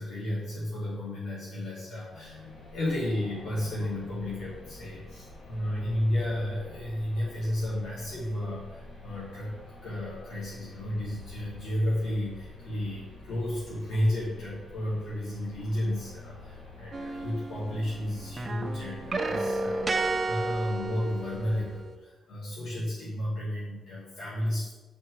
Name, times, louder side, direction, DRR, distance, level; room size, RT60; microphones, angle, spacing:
voice 1, 0.0-2.4 2.7-9.5 9.8-24.7, left 1 dB, 85° left, -8 dB, 2.0 m, -32 dB
sound 1, 2.1-21.8, left 2 dB, 60° left, 1.6 m, -48 dB
sound 2, 16.9-18.0 18.3-21.8, right 3 dB, 25° right, 0.5 m, -32 dB
7.4 x 4.4 x 4.7 m, 1.2 s
wide cardioid pair, 145°, 0 cm